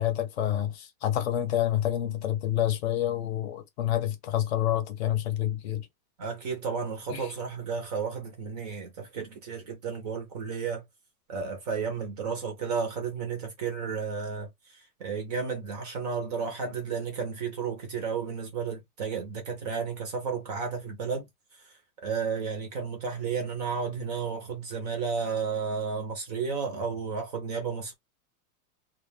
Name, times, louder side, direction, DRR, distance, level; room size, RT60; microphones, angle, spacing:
voice 1, 0.0-5.8 7.1-7.3, left 12 dB, 45° left, 0.7 m, -28 dB
voice 2, 6.2-10.8 11.3-21.3 21.6-21.7 22.0-27.9, right 5 dB, 30° right, 0.5 m, -32 dB
2.2 x 2.2 x 3.2 m
supercardioid pair, 170°, 45 cm